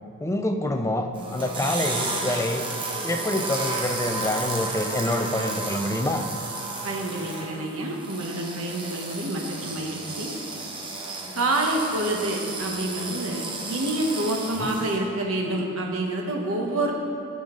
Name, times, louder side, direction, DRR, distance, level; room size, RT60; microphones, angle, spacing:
voice 1, 0.2-2.6 3.0-6.3, left 1 dB, 15° left, 5 dB, 0.5 m, -26 dB
sound 1, 1.1-15.0, right 3 dB, 25° right, 1.0 m, -33 dB
voice 2, 6.8-10.3 11.3-16.9, right 1 dB, 70° right, 0 dB, 1.2 m, -27 dB
15.0 x 5.3 x 3.9 m, 2.6 s
head